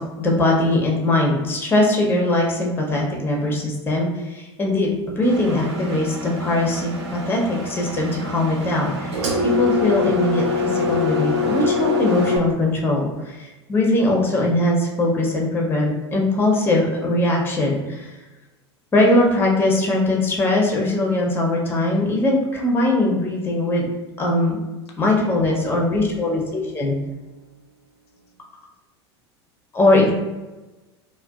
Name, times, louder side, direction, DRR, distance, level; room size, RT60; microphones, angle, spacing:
voice 1, 0.0-4.9 5.2-18.1 18.9-23.9 24.2-24.6 25.0-26.9 29.7-30.1, left 1 dB, 15° left, -1 dB, 0.5 m, -21 dB
Engine, 5.2-12.4, left 4 dB, 75° right, 0.5 m, -24 dB
voice 2, 25.4-28.3 29.9-30.1, right 1 dB, 70° left, 1 dB, 0.5 m, -46 dB
2.5 x 2.1 x 2.3 m, 1.1 s
hypercardioid pair, 90°, 14 cm